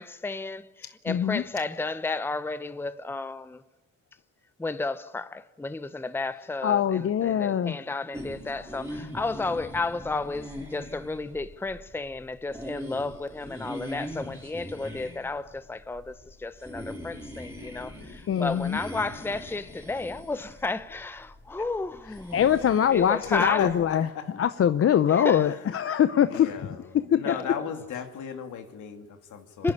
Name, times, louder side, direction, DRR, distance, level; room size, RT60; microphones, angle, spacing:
voice 1, 0.0-3.6 4.6-22.4 22.9-23.6 25.1-25.5 27.2-27.6 29.6-29.7, left 3 dB, 5° left, 0.7 m, -32 dB
voice 2, 1.1-1.4 6.6-7.8 17.6-17.7 18.3-18.8 22.3-24.1 24.4-26.5 27.1-27.2, left 9 dB, 50° left, 0.7 m, -23 dB
sound 1, 8.1-23.9, equal, 10° right, 5.0 m, -42 dB
voice 3, 23.2-24.3 25.4-26.0 26.3-29.7, left 7 dB, 75° left, 2.5 m, -37 dB
26.0 x 11.0 x 9.9 m
cardioid pair, 90°, 30 cm